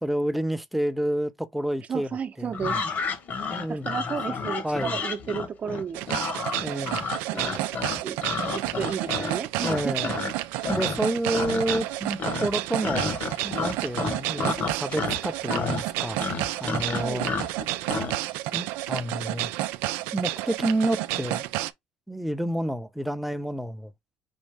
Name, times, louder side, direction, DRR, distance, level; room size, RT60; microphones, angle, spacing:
voice 1, 0.0-2.1 2.4-2.8 3.5-5.0 6.6-7.1 8.3-8.6 9.6-10.2 10.7-13.1 13.4-16.3 16.6-17.4 18.5-19.5 20.1-21.4 22.1-23.9, right 1 dB, ahead, 0.7 m, -29 dB
voice 2, 1.9-2.8 3.7-6.1 7.3-7.7 8.0-8.2 8.5-10.1 16.9-17.3, right 7 dB, 40° right, 0.8 m, -33 dB
sound 1, 2.5-10.3 10.6-11.1 11.3-11.9 12.2-18.2, left 4 dB, 50° left, 1.3 m, -31 dB
sound 2, 5.9-21.7, right 16 dB, 80° right, 0.4 m, -31 dB
5.4 x 2.6 x 3.4 m
supercardioid pair, 80°, 4 cm